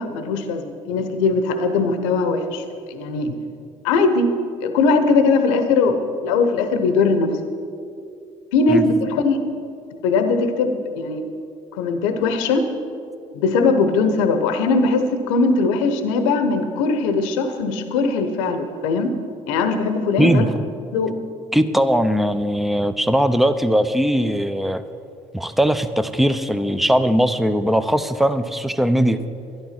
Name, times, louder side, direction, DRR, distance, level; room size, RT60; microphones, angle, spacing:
voice 1, 0.0-3.3 3.8-4.3 4.6-7.4 8.5-9.5 10.0-11.3 11.7-12.7 13.3-19.2 19.5-20.5 20.9-21.2, left 4 dB, 75° left, 8 dB, 0.9 m, -20 dB
voice 2, 20.2-20.5 21.5-24.8 25.3-29.2, equal, ahead, 11 dB, 0.7 m, -19 dB
12.5 x 10.5 x 5.9 m, 2.5 s
hypercardioid pair, 55°, 16 cm